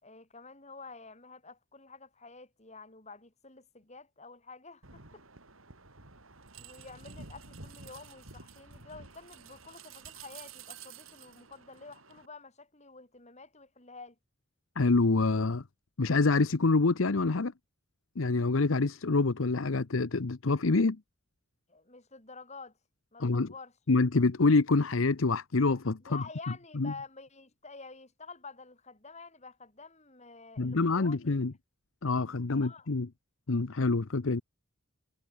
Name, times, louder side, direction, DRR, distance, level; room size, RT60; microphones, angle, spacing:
voice 1, 0.0-5.2 6.6-14.2 21.7-22.8 23.1-23.7 26.0-31.4 32.5-32.9, left 4 dB, 35° left, 5.3 m, -49 dB
sound 1, 4.8-12.3, right 5 dB, 90° right, 5.0 m, -50 dB
voice 2, 14.8-15.6 16.0-17.5 18.2-21.0 23.2-23.5 23.9-26.2 26.8-26.9 30.6-31.5 32.0-33.1 33.5-34.4, left 3 dB, 75° left, 0.8 m, -26 dB
head